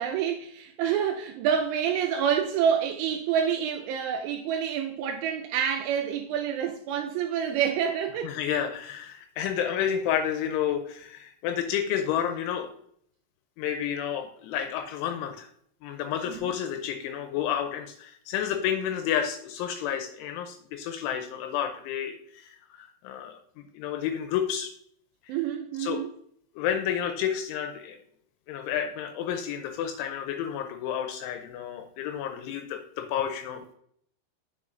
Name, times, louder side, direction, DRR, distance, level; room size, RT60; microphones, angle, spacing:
voice 1, 0.0-8.4 16.3-16.5 25.3-26.1, right 8 dB, 85° right, 2.7 m, -27 dB
voice 2, 8.2-12.7 13.6-15.5 15.8-24.7 25.2-25.4 25.8-26.0 26.6-28.0 28.5-33.8, left 9 dB, 80° left, 2.8 m, -30 dB
8.1 x 6.1 x 2.5 m
omnidirectional pair, 5.9 m